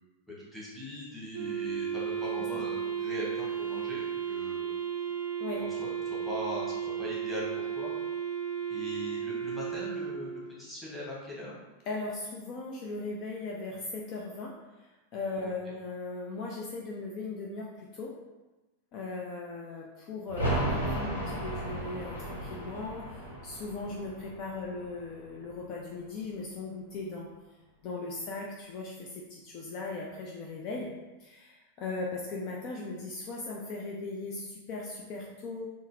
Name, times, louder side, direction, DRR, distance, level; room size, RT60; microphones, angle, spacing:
voice 1, 0.4-4.8 5.6-6.7 7.0-7.5 7.7-7.9 8.7-11.5 15.4-15.5, left 1 dB, ahead, -7 dB, 1.1 m, -40 dB
Wind instrument woodwind instrument, 1.3-10.6, right 8 dB, 50° right, 0.4 m, -34 dB
voice 2, 11.9-18.1 18.9-27.3 27.8-30.9 31.2-35.7, left 3 dB, 40° left, -2 dB, 0.4 m, -38 dB
sound 1, 20.3-25.8 26.1-26.2, right 1 dB, 85° left, 0.8 m, -35 dB
3.7 x 2.0 x 2.5 m, 1.1 s
figure-of-eight pair, 90°, 0 cm